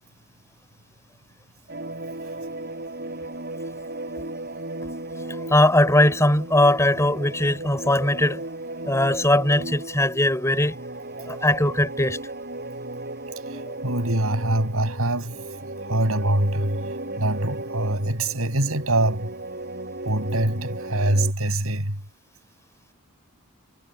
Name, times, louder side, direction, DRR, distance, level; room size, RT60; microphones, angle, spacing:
sound 1, 1.7-21.3, right 2 dB, 50° right, 5.3 m, -35 dB
voice 1, 5.3-8.4 8.8-10.8 11.3-12.2, left 1 dB, 15° left, 5.2 m, -20 dB
voice 2, 13.5-15.4 15.9-16.9 17.2-19.3 20.0-22.0, right 1 dB, 80° right, 6.6 m, -24 dB
head